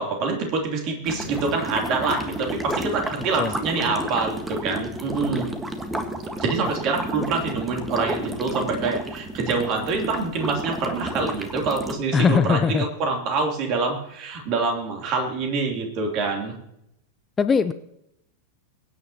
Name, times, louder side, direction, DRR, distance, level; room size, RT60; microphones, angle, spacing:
voice 1, 0.0-5.5 6.4-16.5, right 4 dB, 40° right, 1 dB, 3.2 m, -26 dB
sound 1, 1.1-11.9, right 1 dB, 10° right, 1.6 m, -31 dB
voice 2, 12.1-12.8 17.4-17.7, left 6 dB, 20° left, 12 dB, 0.6 m, -20 dB
23.0 x 9.6 x 3.0 m, 0.78 s
figure-of-eight pair, 90°, 0 cm